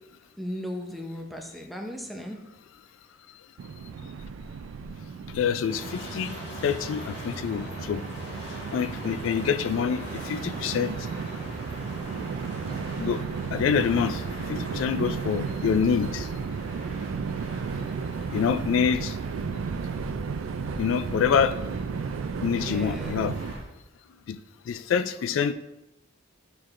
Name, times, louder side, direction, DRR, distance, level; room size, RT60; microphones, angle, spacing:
voice 1, 0.4-2.4 22.5-23.2, equal, ahead, 2 dB, 0.6 m, -36 dB
Train, 3.6-23.5, right 6 dB, 75° right, 0.3 m, -34 dB
voice 2, 5.3-6.4 6.6-8.0 8.7-10.9 13.0-13.2 13.5-14.2 14.5-16.3 18.3-19.2 20.8-21.6 22.4-23.4 24.3-24.4 24.7-25.5, left 7 dB, 75° left, 14 dB, 0.3 m, -26 dB
sound 1, 5.7-23.6, equal, 60° left, 1.8 m, -40 dB
9.4 x 4.5 x 2.5 m, 0.92 s
head